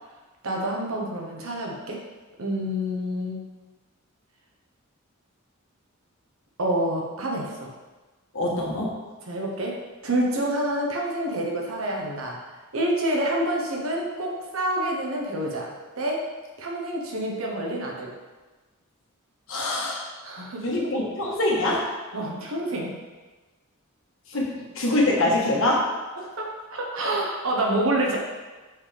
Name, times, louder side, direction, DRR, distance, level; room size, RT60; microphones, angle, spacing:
voice 1, 0.4-2.0 2.4-3.4 6.6-7.7 9.3-9.7 10.0-12.4 12.7-16.2 16.6-18.1 20.2-20.6 22.1-23.0 26.4-28.2, right 1 dB, 80° right, -1 dB, 1.2 m, -27 dB
voice 2, 8.3-9.0 19.5-20.0 20.6-21.9 24.3-25.9, left 1 dB, 70° left, -3 dB, 1.4 m, -24 dB
6.2 x 5.2 x 3.5 m, 1.3 s
head